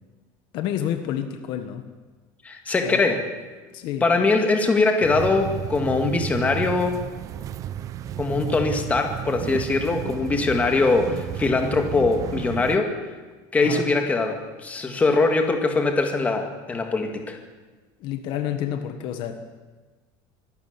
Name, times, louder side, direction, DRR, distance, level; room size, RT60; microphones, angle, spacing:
voice 1, 0.5-1.9 2.8-3.0 3.7-4.1 13.6-13.9 18.0-19.4, left 10 dB, 50° left, 8 dB, 1.5 m, -29 dB
voice 2, 2.4-3.3 4.0-7.0 8.2-12.9 13.5-17.4, left 3 dB, 15° left, 4 dB, 2.0 m, -22 dB
sound 1, 5.0-12.8, right 10 dB, 30° right, 0.7 m, -33 dB
23.5 x 13.0 x 9.6 m, 1.3 s
cardioid pair, 170°, 11 cm